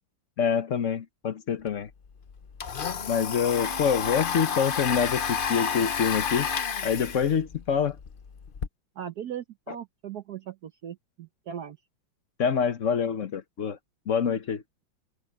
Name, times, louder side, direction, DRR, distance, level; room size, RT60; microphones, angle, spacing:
voice 1, 0.4-1.9 3.1-6.5 6.8-8.0 12.4-13.8 14.1-14.6, left 7 dB, 45° left, 1.2 m, -26 dB
Domestic sounds home sounds, 1.7-1.8 2.1-8.7, left 7 dB, 80° left, 0.4 m, -31 dB
voice 2, 8.9-11.8, right 9 dB, 60° right, 1.2 m, -38 dB
open air
omnidirectional pair, 2.1 m